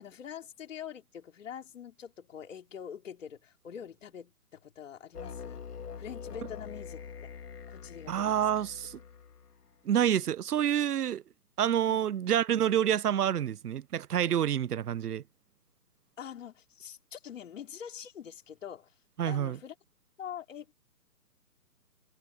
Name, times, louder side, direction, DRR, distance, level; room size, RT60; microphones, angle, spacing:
voice 1, 0.0-5.6 6.0-7.0 7.7-8.4 11.8-12.0 16.2-18.9 19.3-19.7 20.2-20.7, left 8 dB, 50° left, 4.0 m, -44 dB
sound 1, 5.1-9.7, left 6 dB, 75° left, 2.6 m, -44 dB
voice 2, 8.1-9.0 9.8-11.2 11.6-15.2 19.2-19.6, right 10 dB, 70° right, 0.8 m, -28 dB
hypercardioid pair, 160°, 47 cm